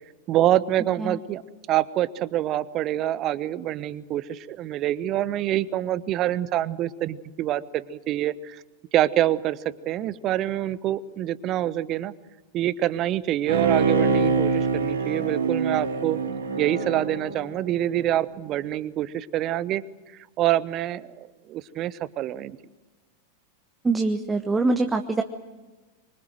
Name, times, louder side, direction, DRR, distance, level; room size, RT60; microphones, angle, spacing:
voice 1, 0.3-1.4 1.7-8.6 8.9-9.6 9.8-12.1 12.5-16.2 16.6-19.8 20.1-22.6, right 13 dB, 35° right, 17 dB, 1.1 m, -26 dB
Bowed string instrument, 13.5-18.1 18.5-18.6, right 5 dB, 70° right, 3.5 m, -25 dB
voice 2, 23.8-25.2, right 3 dB, 15° right, 6 dB, 1.4 m, -23 dB
25.0 x 24.5 x 7.8 m, 1.2 s
figure-of-eight pair, 90°, 0 cm